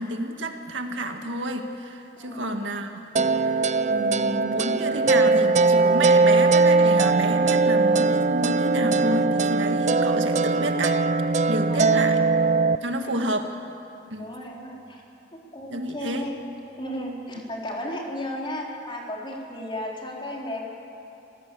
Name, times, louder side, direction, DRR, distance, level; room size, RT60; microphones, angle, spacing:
voice 1, 0.0-2.9 3.2-11.0 11.5-12.2 12.8-13.5 14.1-14.3 15.7-16.2, right 1 dB, 85° right, 5 dB, 1.9 m, -30 dB
voice 2, 2.1-2.6 11.7-12.1 13.0-13.3 14.2-15.0 15.3-20.6, left 1 dB, 25° left, -2 dB, 4.1 m, -35 dB
sound 1, 3.2-12.8, right 3 dB, 40° right, 0.5 m, -20 dB
27.0 x 18.0 x 8.5 m, 2.8 s
head